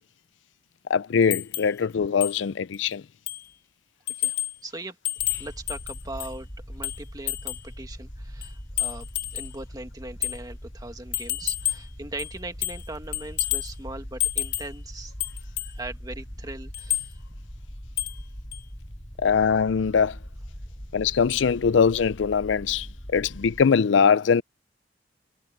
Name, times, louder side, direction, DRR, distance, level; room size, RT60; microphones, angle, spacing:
voice 1, 0.9-3.0 19.2-20.2 20.9-22.9 23.1-24.4, left 6 dB, 85° left, 0.4 m, -22 dB
sound 1, 1.3-1.8 2.2-2.4 2.7-2.8 3.3-3.5 4.1-4.6 5.0-6.4 6.8-7.7 8.4-9.6 10.2-10.4 11.1-11.9 12.2-12.9 13.1-13.7 14.2-14.8 15.2-15.8 16.7-17.1 18.0-18.2 18.5-18.6, left 15 dB, 60° left, 1.9 m, -30 dB
voice 2, 4.2-5.0 5.3-9.1 9.3-15.1 15.6-17.2, right 2 dB, 20° right, 1.9 m, -40 dB
sound 2, 5.2-23.6, equal, 25° left, 4.3 m, -41 dB
head